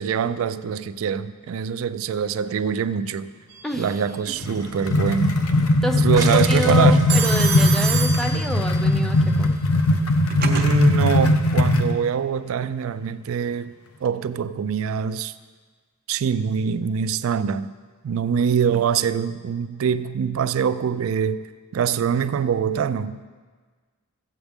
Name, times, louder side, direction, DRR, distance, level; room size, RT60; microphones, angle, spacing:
voice 1, 0.0-3.3 3.8-5.4 6.0-7.0 10.4-13.7 14.0-15.3 16.1-17.7 18.0-21.4 21.7-23.3, right 7 dB, 70° right, 0.3 m, -24 dB
Telephone, 3.5-4.0 7.1-8.9 9.9-10.7, right 6 dB, 45° right, 0.9 m, -28 dB
sound 1, 4.3-5.7 6.1-9.4, right 3 dB, 20° right, 1.3 m, -37 dB
sound 2, 4.4-11.9, left 2 dB, 90° left, 0.7 m, -19 dB
voice 2, 5.8-9.6, right 1 dB, ahead, 0.5 m, -28 dB
14.5 x 8.0 x 3.5 m
head